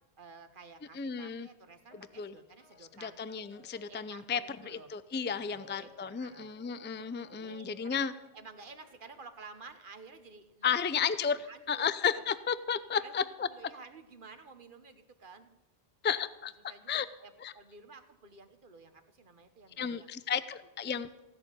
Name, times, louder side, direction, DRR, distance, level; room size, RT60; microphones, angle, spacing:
voice 1, 0.2-3.2 3.9-4.9 5.3-6.6 7.3-10.8 11.3-12.2 13.0-15.5 16.7-20.1, right 4 dB, 55° right, 9 dB, 1.3 m, -52 dB
voice 2, 0.9-1.5 2.2-2.3 3.0-8.1 10.6-13.5 16.0-16.5 16.9-17.1 17.4-17.5 19.8-21.1, left 7 dB, 15° left, 14 dB, 0.3 m, -33 dB
sound 1, 1.9-9.3, left 3 dB, 65° left, 3.5 m, -60 dB
16.0 x 6.8 x 9.8 m, 1.0 s
omnidirectional pair, 1.0 m